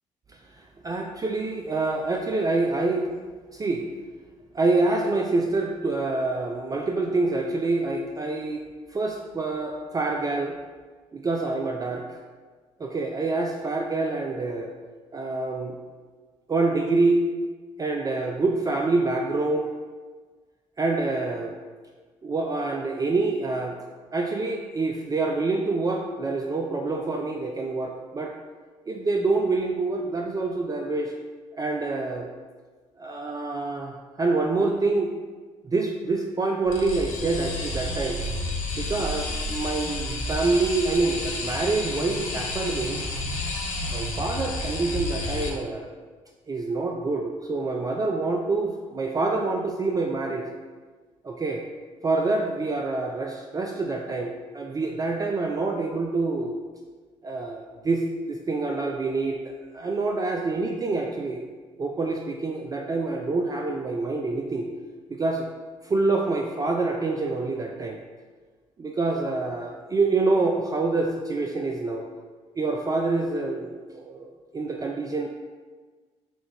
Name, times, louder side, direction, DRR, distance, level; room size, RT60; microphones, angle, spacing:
voice 1, 0.3-3.1 3.5-3.9 4.5-8.6 8.9-10.6 11.1-12.2 12.8-14.7 15.1-15.8 16.5-17.3 17.8-19.7 20.8-21.6 22.2-23.8 24.1-28.4 28.9-31.1 31.5-32.3 33.0-35.1 35.6-38.2 38.8-43.0 43.9-45.9 46.5-50.5 51.2-51.6 52.0-56.6 57.2-61.4 61.8-64.7 65.1-65.5 65.8-68.0 68.8-72.1 72.6-75.3, right 3 dB, 25° right, 2 dB, 0.4 m, -26 dB
sound 1, 36.7-45.5, left 2 dB, 60° left, 1.0 m, -30 dB
6.0 x 2.3 x 3.4 m, 1.4 s
hypercardioid pair, 45°, 16 cm